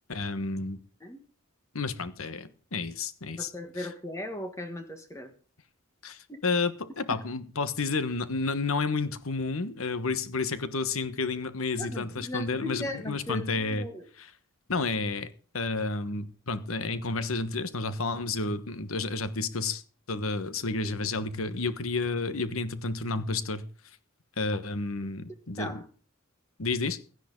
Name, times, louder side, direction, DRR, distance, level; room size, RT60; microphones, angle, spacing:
voice 1, 0.1-0.8 1.7-3.5 3.8-3.9 6.0-13.9 14.2-14.3 14.7-15.3 15.5-19.8 20.1-23.6 24.4-25.8 26.6-27.0, left 3 dB, 80° left, 1.3 m, -31 dB
voice 2, 3.4-5.3 6.3-6.4 7.1-7.2 11.8-14.0 25.6-25.8, left 1 dB, 15° left, 1.4 m, -37 dB
16.5 x 11.5 x 3.9 m
head